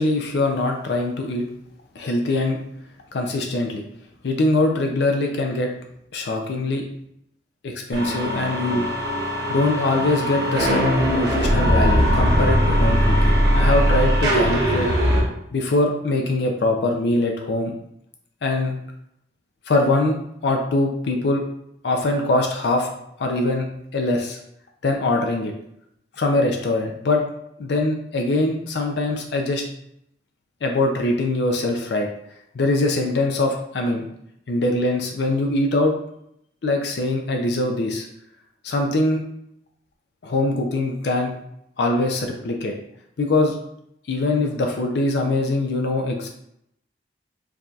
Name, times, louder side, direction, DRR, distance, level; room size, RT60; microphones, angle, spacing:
voice 1, 0.0-1.4 2.0-2.6 3.1-3.8 4.2-5.7 6.1-6.9 7.6-8.8 9.5-13.0 13.2-14.9 15.5-17.7 18.4-18.8 19.7-20.2 20.4-21.4 21.8-22.9 23.2-23.7 23.9-24.4 24.8-25.5 26.2-27.2 27.6-29.6 30.6-32.1 32.5-34.1 34.5-35.9 36.6-38.1 38.6-39.2 40.2-41.3 41.8-42.7 43.2-43.6 44.1-46.3, left 2 dB, 65° left, 2 dB, 0.4 m, -22 dB
sound 1, 7.9-15.2, equal, 60° right, 1.0 m, -20 dB
4.7 x 2.7 x 2.3 m, 0.75 s
head